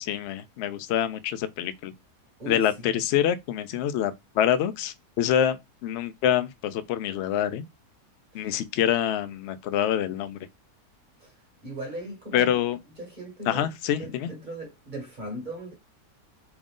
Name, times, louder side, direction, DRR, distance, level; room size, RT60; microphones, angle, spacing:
voice 1, 0.0-1.9 2.5-7.6 8.3-10.4 12.3-12.8 13.5-14.3, left 10 dB, 75° left, 0.6 m, -26 dB
voice 2, 11.6-12.6 13.0-13.7 14.0-15.7, right 1 dB, 35° right, 1.2 m, -38 dB
3.7 x 3.0 x 3.6 m
omnidirectional pair, 1.7 m